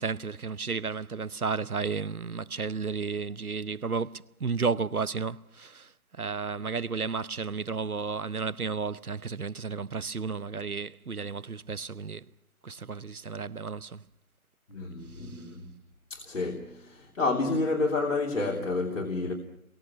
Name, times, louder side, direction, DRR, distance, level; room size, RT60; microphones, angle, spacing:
voice 1, 0.0-12.3 12.6-14.0 15.2-15.4, right 5 dB, 85° right, 1.0 m, -33 dB
voice 2, 14.7-15.7 16.1-19.3, left 3 dB, 60° left, 3.2 m, -30 dB
28.5 x 22.5 x 5.9 m
figure-of-eight pair, 150°, 43 cm